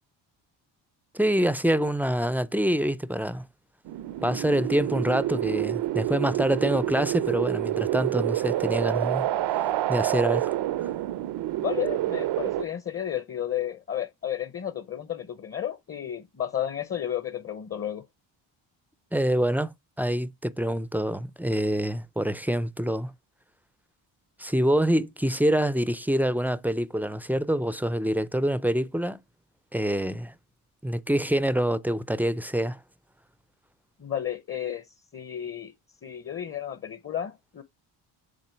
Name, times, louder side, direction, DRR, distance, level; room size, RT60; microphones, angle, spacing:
voice 1, 1.1-3.5 4.2-9.3 9.9-10.5 10.8-10.9 19.1-23.1 24.4-29.2 29.7-30.3 30.8-32.8, equal, 5° right, 0.5 m, -26 dB
sound 1, 3.9-12.6, right 14 dB, 60° right, 0.6 m, -28 dB
voice 2, 11.6-18.1 34.0-34.9 35.1-35.7 36.0-37.6, left 10 dB, 30° left, 0.8 m, -32 dB
7.6 x 3.6 x 4.5 m
supercardioid pair, 75°, 48 cm